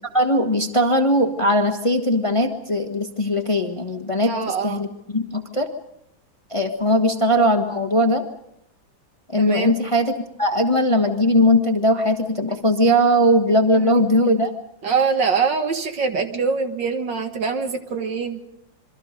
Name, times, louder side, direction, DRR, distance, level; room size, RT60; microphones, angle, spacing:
voice 1, 0.1-4.3 4.6-4.9 5.1-5.7 6.5-8.2 9.3-10.1 10.4-14.5, equal, 20° left, 4 dB, 1.3 m, -19 dB
voice 2, 4.2-4.8 9.4-9.8 13.7-14.1 14.8-18.4, right 5 dB, 65° right, 6 dB, 2.3 m, -24 dB
27.0 x 24.0 x 5.2 m, 0.77 s
omnidirectional pair, 2.2 m